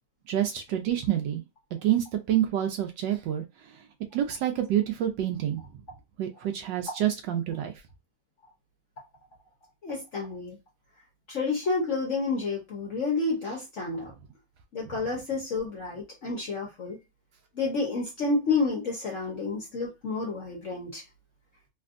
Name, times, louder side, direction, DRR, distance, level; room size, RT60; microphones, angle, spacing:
voice 1, 0.3-1.4 1.8-3.4 4.1-5.6 6.2-7.7 14.9-15.0, right 11 dB, 75° right, 1.1 m, -27 dB
voice 2, 9.8-10.6 11.3-14.1 14.7-17.0 17.6-21.0, left 3 dB, 55° left, 0.9 m, -30 dB
3.4 x 2.5 x 2.4 m
omnidirectional pair, 2.2 m